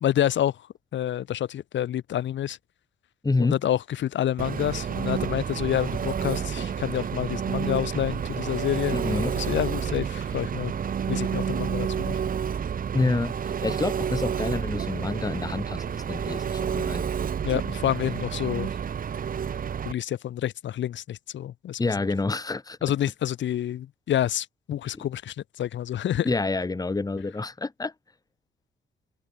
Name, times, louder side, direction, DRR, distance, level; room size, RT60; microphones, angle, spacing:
voice 1, 0.0-0.6 0.9-2.6 3.4-10.7 11.1-12.2 13.6-13.7 17.4-18.7 19.9-21.8 22.8-26.3, left 11 dB, 70° left, 2.0 m, -28 dB
voice 2, 3.2-3.6 8.9-9.4 12.9-17.1 21.8-22.8 24.9-25.1 26.2-27.9, left 3 dB, 20° left, 1.9 m, -28 dB
Engine, 4.4-19.9, right 7 dB, 45° right, 1.3 m, -30 dB
cardioid pair, 90°, 20 cm